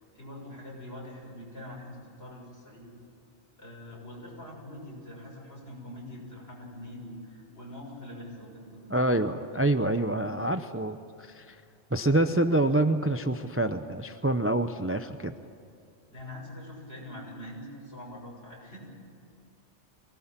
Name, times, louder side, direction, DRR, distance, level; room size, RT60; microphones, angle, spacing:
voice 1, 0.0-3.0 3.6-9.3 16.1-18.9, left 1 dB, 60° left, -2 dB, 7.0 m, -44 dB
voice 2, 8.9-11.6 11.9-15.3, right 1 dB, 15° right, 9 dB, 0.6 m, -26 dB
24.0 x 18.5 x 9.0 m, 2.5 s
omnidirectional pair, 1.2 m